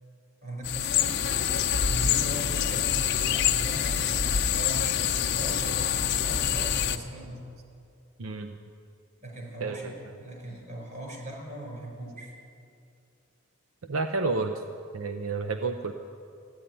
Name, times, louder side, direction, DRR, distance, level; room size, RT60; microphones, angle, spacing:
voice 1, 0.4-7.4 9.2-12.3, right 1 dB, 40° right, -1 dB, 5.0 m, -39 dB
sound 1, 0.6-7.0, left 8 dB, 55° left, 0.7 m, -26 dB
voice 2, 8.2-8.6 9.6-9.9 13.9-14.6 14.9-15.9, right 3 dB, 85° right, 6 dB, 0.7 m, -30 dB
15.0 x 10.5 x 8.9 m, 2.5 s
head